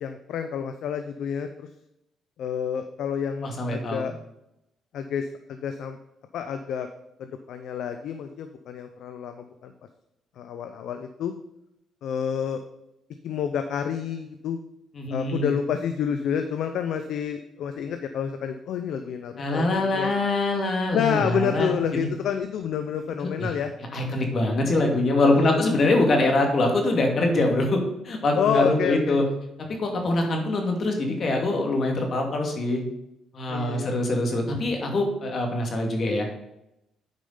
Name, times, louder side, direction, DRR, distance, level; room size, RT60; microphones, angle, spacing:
voice 1, 0.0-1.7 2.4-4.1 4.9-6.0 6.3-6.9 7.2-9.7 10.4-11.3 12.0-12.6 13.2-14.6 15.1-20.1 20.9-23.7 25.3-25.8 28.4-29.2 33.5-34.0, left 8 dB, 75° left, 8 dB, 0.6 m, -29 dB
voice 2, 3.4-4.1 14.9-15.5 19.4-22.1 23.2-23.5 23.9-27.8 28.0-29.2 29.6-32.8 33.3-36.3, left 2 dB, 50° left, 2 dB, 2.2 m, -24 dB
9.1 x 5.0 x 5.6 m, 0.85 s
cardioid pair, 90°, 0 cm